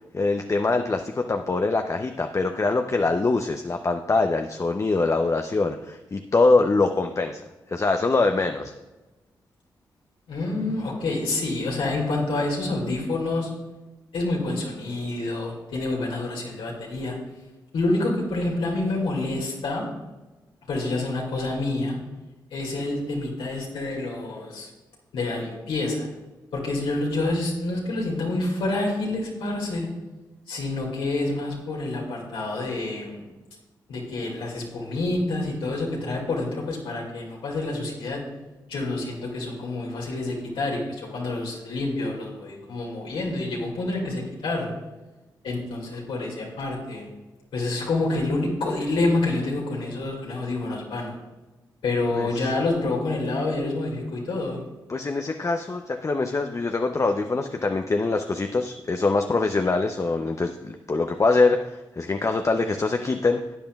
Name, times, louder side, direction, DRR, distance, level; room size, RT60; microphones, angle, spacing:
voice 1, 0.1-7.4 7.7-8.7 52.1-52.5 54.9-63.4, left 3 dB, 35° left, 5 dB, 0.6 m, -23 dB
voice 2, 10.3-13.5 14.1-17.1 17.7-19.8 20.7-22.0 22.5-24.7 25.1-26.1 26.5-29.9 30.5-33.2 33.9-38.2 38.7-44.7 45.4-47.1 47.5-51.2 51.8-54.6, left 2 dB, 75° left, -2 dB, 2.1 m, -27 dB
12.5 x 8.6 x 2.3 m, 1.1 s
supercardioid pair, 40°, 9 cm